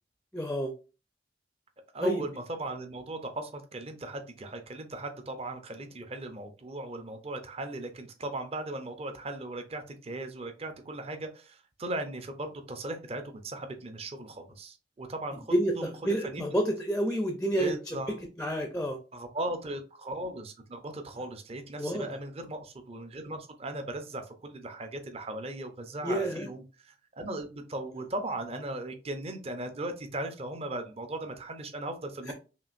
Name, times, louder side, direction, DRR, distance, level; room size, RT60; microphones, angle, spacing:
voice 1, 0.3-0.7 2.0-2.2 15.5-18.0 18.4-19.0 21.8-22.0 26.0-26.5 32.3-32.4, right 1 dB, 5° left, 4 dB, 0.5 m, -29 dB
voice 2, 1.9-15.9 16.2-16.5 17.6-18.2 19.1-32.3, right 1 dB, 35° right, 6 dB, 0.6 m, -38 dB
5.8 x 2.5 x 2.5 m, 0.32 s
head